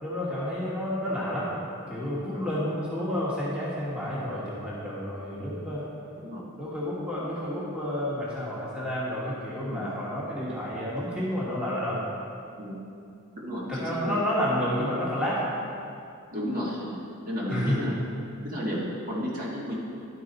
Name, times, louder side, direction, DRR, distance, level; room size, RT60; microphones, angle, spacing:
voice 1, 0.0-1.5 1.9-5.8 6.6-12.0 13.7-15.5 17.5-17.8, equal, 5° right, -7 dB, 1.3 m, -30 dB
voice 2, 13.4-14.1 16.3-16.9 17.2-18.0 18.4-19.8, equal, 45° right, -5 dB, 1.5 m, -32 dB
11.5 x 4.8 x 3.9 m, 2.5 s
head